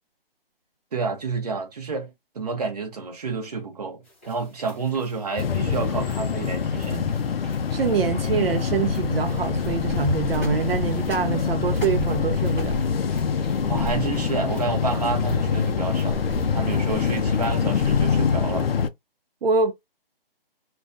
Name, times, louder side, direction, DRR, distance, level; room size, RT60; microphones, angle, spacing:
voice 1, 0.9-7.1 13.6-18.7, right 4 dB, 40° right, 0.8 m, -30 dB
sound 1, 4.0-17.8, equal, 15° left, 0.6 m, -50 dB
sound 2, 5.4-18.9, left 6 dB, 75° left, 0.5 m, -24 dB
voice 2, 7.7-12.8 19.4-19.7, right 6 dB, 75° right, 0.5 m, -25 dB
sound 3, 8.6-18.6, equal, 5° right, 1.1 m, -38 dB
2.4 x 2.2 x 2.5 m
hypercardioid pair, 170°, 30 cm